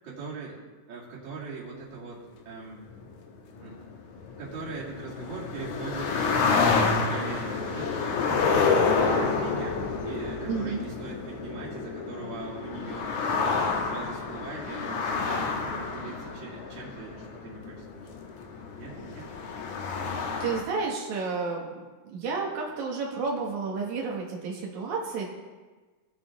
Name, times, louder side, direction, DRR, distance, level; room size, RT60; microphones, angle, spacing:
voice 1, 0.0-0.6 0.9-2.8 3.6-3.8 4.4-7.9 8.2-13.5 13.8-18.1 18.8-19.6, right 4 dB, 40° right, -6 dB, 2.9 m, -40 dB
sound 1, 2.9-20.6, left 4 dB, 85° left, 2.5 m, -29 dB
voice 2, 10.5-10.8 20.4-25.3, right 4 dB, 80° right, -1 dB, 2.8 m, -31 dB
17.5 x 7.6 x 3.6 m, 1.3 s
omnidirectional pair, 3.3 m